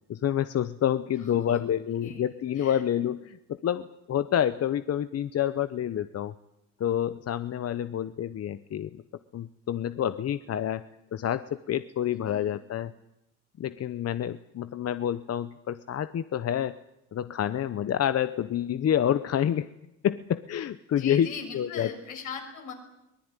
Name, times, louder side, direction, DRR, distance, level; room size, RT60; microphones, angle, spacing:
voice 1, 0.1-3.4 3.6-6.3 6.8-9.0 9.3-10.8 11.1-12.9 13.6-16.8 17.1-19.7 20.0-21.3 21.5-21.9, left 10 dB, 55° left, 13 dB, 0.9 m, -28 dB
voice 2, 1.2-1.6 1.9-2.3 2.5-2.8 12.3-12.5 20.9-22.7, left 6 dB, 85° left, 4 dB, 6.3 m, -40 dB
23.0 x 19.0 x 9.9 m, 0.88 s
cardioid pair, 90°, 30 cm